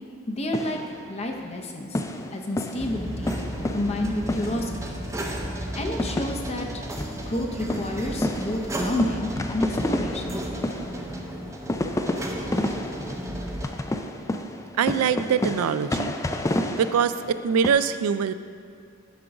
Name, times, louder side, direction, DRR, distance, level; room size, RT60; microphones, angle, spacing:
voice 1, 0.3-0.8 1.1-2.0 2.3-3.4 3.7-5.0 5.7-6.8 7.3-10.4, left 1 dB, 30° left, 2 dB, 0.7 m, -30 dB
sound 1, 0.5-1.6 1.9-5.1 5.4-5.5 5.9-17.7, left 1 dB, 15° left, 0.3 m, -30 dB
sound 2, 2.8-13.7, right 1 dB, 15° right, 0.7 m, -33 dB
voice 2, 14.8-16.1 16.8-18.3, right 7 dB, 85° right, 12 dB, 0.3 m, -23 dB
10.5 x 3.8 x 5.8 m, 2.3 s
head